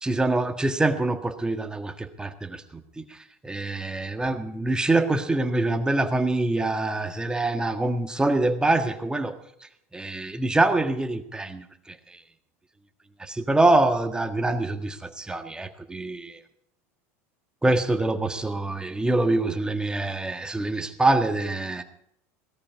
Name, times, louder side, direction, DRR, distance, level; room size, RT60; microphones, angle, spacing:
voice 1, 0.0-9.4 9.9-12.2 13.2-16.4 17.6-21.8, right 2 dB, 10° right, 7 dB, 1.6 m, -25 dB
17.5 x 13.5 x 4.8 m, 0.73 s
hypercardioid pair, 100°, 8 cm